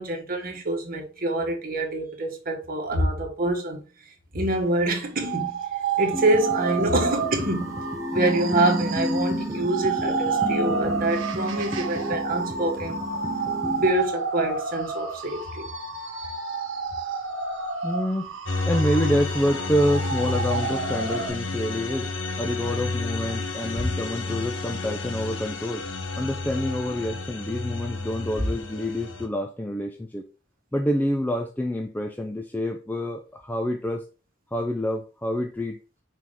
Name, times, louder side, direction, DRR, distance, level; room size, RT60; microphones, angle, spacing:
voice 1, 0.0-3.8 4.3-5.6 6.0-7.8 8.1-13.0 13.7-15.7, right 1 dB, 45° right, 1.5 m, -26 dB
sound 1, 5.2-21.3, right 5 dB, 70° right, 1.1 m, -30 dB
sound 2, 6.1-13.9, equal, 15° right, 1.0 m, -31 dB
voice 2, 17.8-18.3 18.7-22.1 22.4-25.8 26.2-30.3 30.7-34.0 34.5-35.8, equal, 10° left, 0.4 m, -27 dB
sound 3, 18.5-29.3, left 3 dB, 70° left, 1.2 m, -30 dB
6.0 x 4.6 x 3.6 m
head